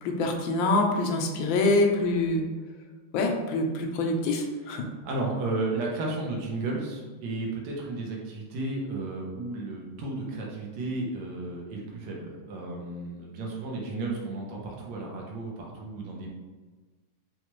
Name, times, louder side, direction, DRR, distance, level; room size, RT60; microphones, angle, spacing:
voice 1, 0.0-2.4 3.1-4.8, left 2 dB, 75° left, 2 dB, 1.2 m, -25 dB
voice 2, 5.0-16.3, right 2 dB, 65° right, -2 dB, 1.3 m, -33 dB
4.3 x 2.3 x 3.0 m, 1.3 s
omnidirectional pair, 2.2 m